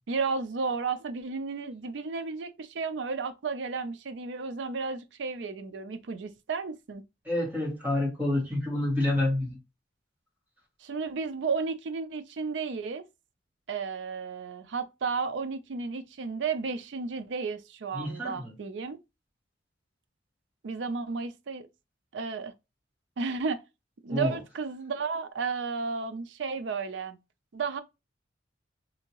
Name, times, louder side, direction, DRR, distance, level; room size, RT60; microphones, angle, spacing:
voice 1, 0.1-7.0 10.8-13.0 13.7-19.0 20.6-21.7 22.1-22.5 23.2-23.6 24.0-27.2 27.5-27.8, right 4 dB, 70° right, 0.4 m, -33 dB
voice 2, 7.3-9.6 17.9-18.5 24.1-24.3, left 1 dB, 10° right, 1.7 m, -28 dB
3.4 x 2.8 x 2.9 m
head